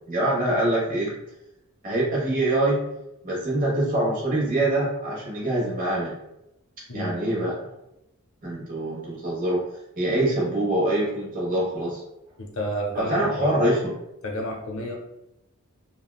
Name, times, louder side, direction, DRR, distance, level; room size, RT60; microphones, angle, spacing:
voice 1, 0.1-1.1 1.8-2.9 3.2-6.1 6.9-7.7 8.4-9.6 10.0-12.0 12.9-13.9, right 1 dB, 40° right, -5 dB, 1.0 m, -24 dB
voice 2, 12.4-13.5 14.2-14.9, equal, 65° left, 1 dB, 0.7 m, -30 dB
3.5 x 2.2 x 2.3 m, 0.86 s
head